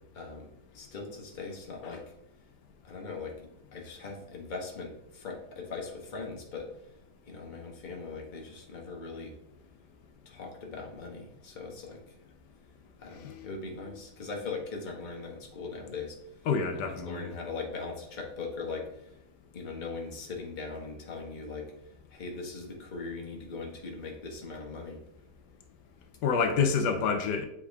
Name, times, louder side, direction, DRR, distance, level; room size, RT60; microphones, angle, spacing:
voice 1, 0.1-2.0 2.8-6.7 7.3-9.3 10.2-12.2 13.0-16.5 16.7-19.2 19.5-21.7 22.1-25.0, left 4 dB, 30° left, 1.1 m, -40 dB
voice 2, 16.5-17.3 26.2-27.5, left 5 dB, 90° left, 1.3 m, -28 dB
7.7 x 3.6 x 3.5 m
omnidirectional pair, 1.8 m